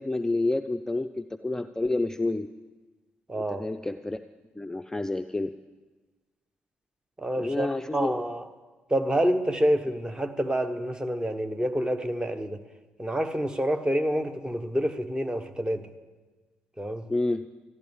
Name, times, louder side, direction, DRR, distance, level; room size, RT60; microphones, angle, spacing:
voice 1, 0.0-2.5 3.3-4.2 4.5-5.5 7.4-8.1 17.1-17.5, left 2 dB, 10° left, 8 dB, 0.5 m, -29 dB
voice 2, 3.3-3.6 7.2-8.4 8.9-12.6 13.0-15.9 16.8-17.1, equal, 15° right, 8 dB, 1.2 m, -27 dB
13.5 x 11.0 x 7.3 m, 1.3 s
hypercardioid pair, 45°, 5 cm